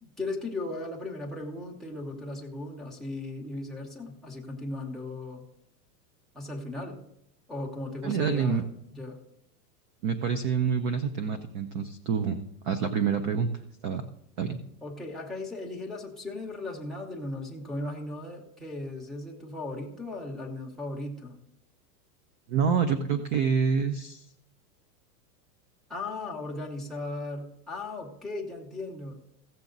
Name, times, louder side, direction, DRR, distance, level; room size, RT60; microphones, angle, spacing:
voice 1, 0.0-5.4 6.3-7.0 7.5-9.2 14.8-21.4 22.9-23.2 25.9-29.2, left 2 dB, ahead, -3 dB, 1.0 m, -37 dB
voice 2, 8.0-8.6 10.0-13.5 13.8-14.1 14.4-14.6 22.5-24.3, right 6 dB, 30° right, 10 dB, 0.4 m, -27 dB
16.0 x 7.2 x 3.9 m, 0.77 s
supercardioid pair, 155°, 50 cm